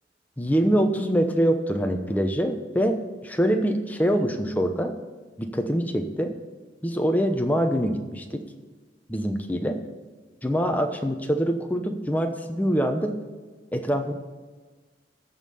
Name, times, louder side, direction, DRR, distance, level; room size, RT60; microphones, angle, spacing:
voice 1, 0.4-4.9 5.4-6.3 6.8-8.4 9.1-9.7 10.4-13.1 13.7-14.1, equal, 10° left, 5 dB, 0.9 m, -24 dB
14.0 x 5.6 x 6.9 m, 1.3 s
head